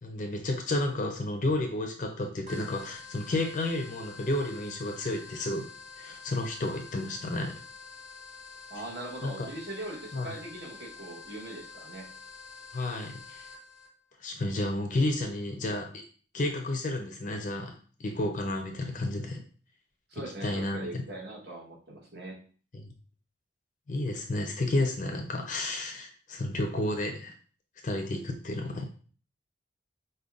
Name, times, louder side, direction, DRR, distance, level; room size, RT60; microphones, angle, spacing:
voice 1, 0.0-5.7 6.0-7.5 9.2-9.5 10.1-10.3 12.7-13.5 14.2-16.0 16.3-19.4 20.4-20.9 22.7-22.8 23.9-27.3 27.8-28.9, left 1 dB, 45° left, 3 dB, 0.4 m, -31 dB
sound 1, 2.5-13.9, left 5 dB, 35° right, 0.8 m, -47 dB
voice 2, 8.7-12.1 20.1-22.4, right 1 dB, 60° right, -3 dB, 1.1 m, -41 dB
5.1 x 2.1 x 2.3 m, 0.42 s
head